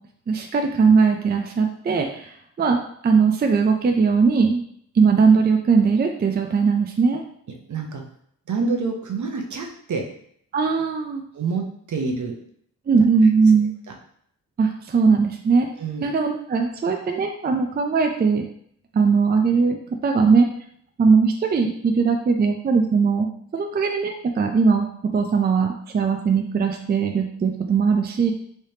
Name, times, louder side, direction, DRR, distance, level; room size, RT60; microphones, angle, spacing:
voice 1, 0.3-4.6 4.9-7.2 10.5-11.2 12.9-13.7 14.6-15.7 16.0-18.4 18.9-20.5 21.0-28.3, right 5 dB, 30° right, 4 dB, 0.4 m, -19 dB
voice 2, 7.7-8.0 8.5-10.0 11.3-12.3 15.8-16.0, right 4 dB, 65° right, 2 dB, 0.7 m, -27 dB
3.3 x 3.2 x 2.7 m, 0.66 s
wide cardioid pair, 95°, 32 cm